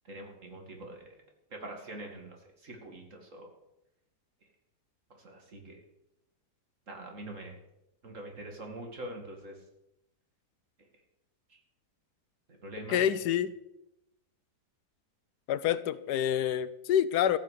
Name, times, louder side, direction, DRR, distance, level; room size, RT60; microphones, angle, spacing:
voice 1, 0.0-1.1 1.5-3.5 5.1-5.8 6.9-7.6 8.0-9.6 11.5-11.6 12.5-13.1, right 1 dB, 50° right, 2 dB, 2.6 m, -44 dB
voice 2, 12.9-13.5 15.5-17.4, left 10 dB, 80° left, 15 dB, 1.2 m, -27 dB
14.5 x 6.6 x 8.1 m, 0.87 s
omnidirectional pair, 1.8 m